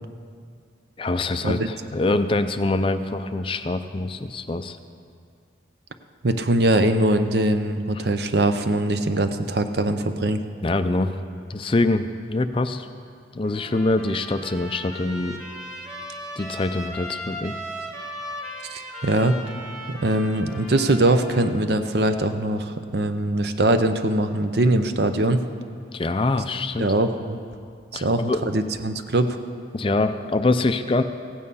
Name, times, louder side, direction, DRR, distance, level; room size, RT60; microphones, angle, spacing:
voice 1, 1.0-4.8 10.6-11.2 11.5-12.9 13.3-15.4 16.4-17.5 25.9-26.9 27.9-28.4 29.7-31.0, left 2 dB, 30° left, 9 dB, 0.4 m, -24 dB
voice 2, 6.2-10.4 18.7-19.4 20.0-25.4 26.8-27.4 27.9-29.4, right 1 dB, 60° right, 8 dB, 0.7 m, -22 dB
Trumpet, 13.4-21.6, equal, ahead, 1.6 m, -37 dB
16.0 x 8.8 x 5.5 m, 2.2 s
head